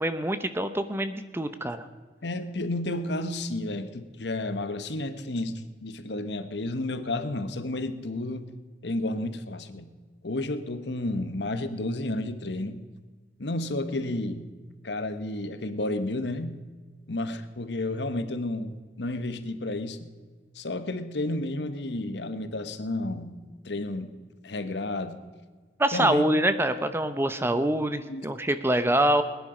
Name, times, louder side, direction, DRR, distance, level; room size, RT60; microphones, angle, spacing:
voice 1, 0.0-1.8 25.8-29.2, right 1 dB, 15° right, 10 dB, 0.8 m, -25 dB
voice 2, 2.2-8.5 8.8-9.9 10.2-12.8 13.4-14.5 14.8-16.6 17.1-20.1 20.5-23.4 23.6-24.1 24.4-25.2 25.9-26.2 28.1-28.2, left 2 dB, 70° left, 10 dB, 1.1 m, -31 dB
20.5 x 10.5 x 5.0 m, 1.5 s
head